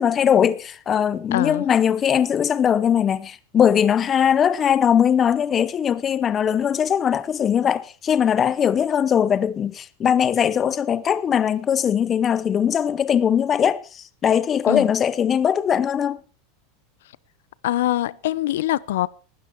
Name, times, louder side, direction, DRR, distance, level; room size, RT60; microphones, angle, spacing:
voice 1, 0.0-16.2, left 8 dB, 20° left, 0.7 m, -20 dB
voice 2, 1.3-1.7 14.7-14.9 17.6-19.1, left 14 dB, 85° left, 0.7 m, -23 dB
19.5 x 12.5 x 4.5 m
supercardioid pair, 170°, 0 cm